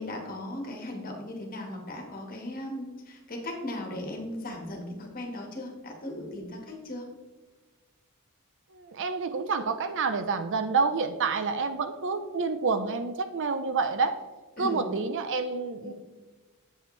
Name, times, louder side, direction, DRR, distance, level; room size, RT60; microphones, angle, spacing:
voice 1, 0.0-7.1 14.6-14.9 15.8-15.9, left 1 dB, 40° left, 2 dB, 1.6 m, -37 dB
voice 2, 8.7-14.2 14.6-15.9, right 4 dB, 55° right, 10 dB, 0.6 m, -28 dB
8.1 x 7.8 x 3.2 m, 1.3 s
head